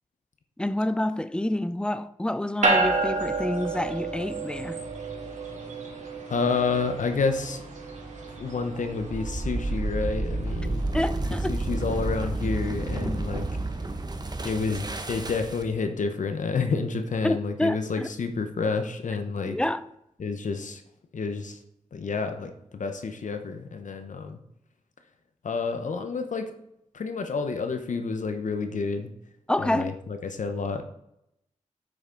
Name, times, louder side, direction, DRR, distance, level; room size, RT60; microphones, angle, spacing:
voice 1, 0.6-4.8 10.9-11.6 13.0-13.1 17.2-18.1 19.5-19.9 29.5-29.9, left 1 dB, 5° left, 0.5 m, -28 dB
sound 1, 2.6-14.2, right 3 dB, 70° right, 2.2 m, -32 dB
voice 2, 6.3-7.6 8.4-10.8 11.5-13.4 14.4-19.6 20.2-20.8 21.1-21.6 21.9-24.4 25.4-26.5 26.9-29.1 29.6-30.8, left 4 dB, 75° left, 0.9 m, -29 dB
sound 2, 9.0-15.8, right 2 dB, 30° right, 1.0 m, -30 dB
8.9 x 8.2 x 3.9 m
cardioid pair, 65°, 13 cm